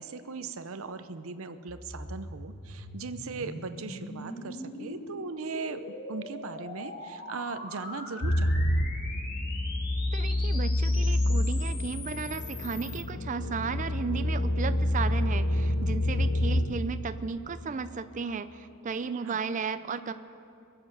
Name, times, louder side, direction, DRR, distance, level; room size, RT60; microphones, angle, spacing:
voice 1, 0.0-8.8 19.1-19.4, right 4 dB, 70° right, 11 dB, 0.7 m, -39 dB
sound 1, 1.7-13.0, left 1 dB, 45° left, 2.1 m, -42 dB
sound 2, 8.2-16.8, left 1 dB, 65° left, 0.9 m, -27 dB
voice 2, 10.1-20.1, right 5 dB, 35° right, 11 dB, 0.4 m, -34 dB
23.0 x 7.9 x 6.7 m, 2.6 s
head